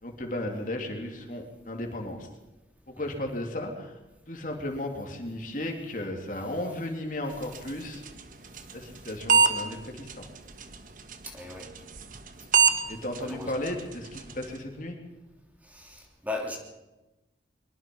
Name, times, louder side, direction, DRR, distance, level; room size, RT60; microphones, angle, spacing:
voice 1, 0.0-2.3 2.9-4.0 4.3-8.0 8.7-10.3 12.9-15.0, left 1 dB, 45° left, 2 dB, 3.2 m, -35 dB
sound 1, 7.3-14.6, right 6 dB, 45° right, 1.4 m, -29 dB
voice 2, 11.2-11.7 13.2-13.5 15.6-16.6, left 2 dB, 10° right, 0 dB, 3.0 m, -37 dB
24.0 x 22.5 x 5.5 m, 1.0 s
head